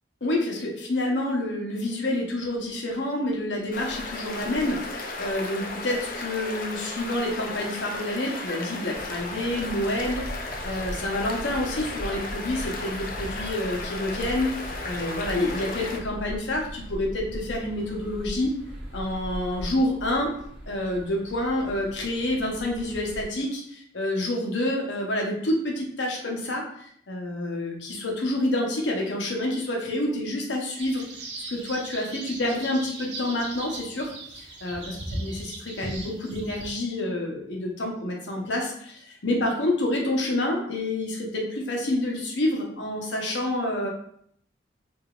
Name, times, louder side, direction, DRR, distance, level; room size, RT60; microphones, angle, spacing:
voice 1, 0.2-10.2 10.6-18.5 18.9-20.3 20.7-31.0 31.5-43.9, left 1 dB, 75° left, 0 dB, 0.9 m, -28 dB
sound 1, 3.7-16.0, left 2 dB, 45° left, 0.5 m, -35 dB
sound 2, 8.9-23.2, equal, 5° right, 1.1 m, -39 dB
sound 3, 30.8-36.7, right 2 dB, 65° right, 0.6 m, -38 dB
4.8 x 2.6 x 2.4 m, 0.65 s
head